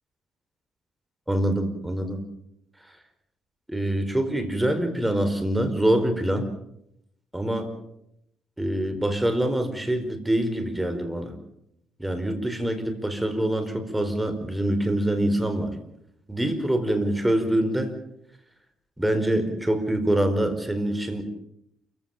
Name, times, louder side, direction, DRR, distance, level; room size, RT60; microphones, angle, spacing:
voice 1, 1.3-2.2 3.7-6.5 7.3-7.7 8.6-11.3 12.0-15.7 16.3-17.9 19.0-21.2, right 1 dB, 10° right, 8 dB, 4.8 m, -25 dB
28.5 x 16.5 x 7.4 m, 0.79 s
cardioid pair, 90°, 0 cm